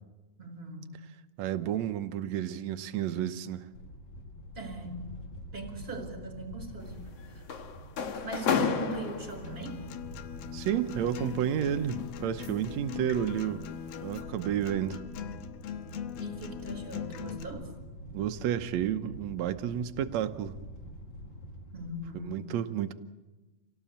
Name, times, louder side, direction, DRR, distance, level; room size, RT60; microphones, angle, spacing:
voice 1, 0.4-0.9 4.5-5.0 5.5-7.4 8.2-9.9 16.2-17.7 21.7-22.5, right 2 dB, 15° right, 4 dB, 4.6 m, -40 dB
voice 2, 1.4-3.6 10.5-13.6 14.0-15.0 18.1-20.5 22.2-22.9, right 10 dB, 75° right, 9 dB, 1.6 m, -31 dB
sound 1, 3.7-22.3, equal, 35° left, 2.4 m, -46 dB
sound 2, 6.8-9.8 10.9-12.8 13.3-13.5 14.0-14.2, left 7 dB, 55° left, 2.1 m, -33 dB
Acoustic guitar, 9.4-17.4, left 9 dB, 80° left, 3.0 m, -41 dB
28.0 x 18.0 x 8.6 m, 1.1 s
omnidirectional pair, 4.4 m